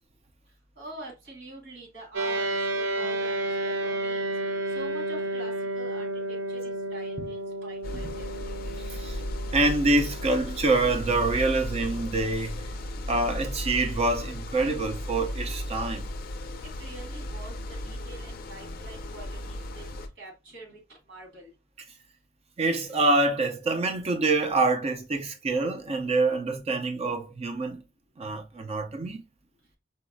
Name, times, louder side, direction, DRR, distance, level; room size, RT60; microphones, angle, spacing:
voice 1, 0.8-2.5 2.8-4.3 4.7-8.3 16.6-19.8 20.2-20.8 21.1-21.5, right 2 dB, 70° right, 1.7 m, -45 dB
sound 1, 2.1-13.7, right 1 dB, 85° right, 0.6 m, -33 dB
sound 2, 7.8-20.1, left 1 dB, 50° left, 0.4 m, -35 dB
voice 2, 8.9-9.2 9.5-12.6 13.1-16.1 22.6-27.8 28.2-29.2, right 2 dB, 35° right, 0.4 m, -26 dB
4.0 x 2.0 x 2.5 m
head